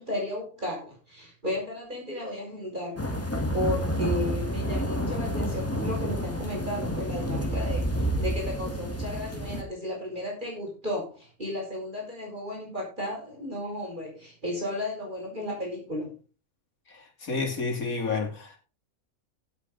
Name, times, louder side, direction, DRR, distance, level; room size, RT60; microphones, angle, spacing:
voice 1, 0.0-3.0 3.5-16.1, left 1 dB, 30° right, 5.6 m, -34 dB
sound 1, 3.0-9.6, equal, 10° left, 1.8 m, -29 dB
voice 2, 17.2-18.6, left 4 dB, 70° left, 3.2 m, -29 dB
16.5 x 7.2 x 4.0 m
omnidirectional pair, 1.5 m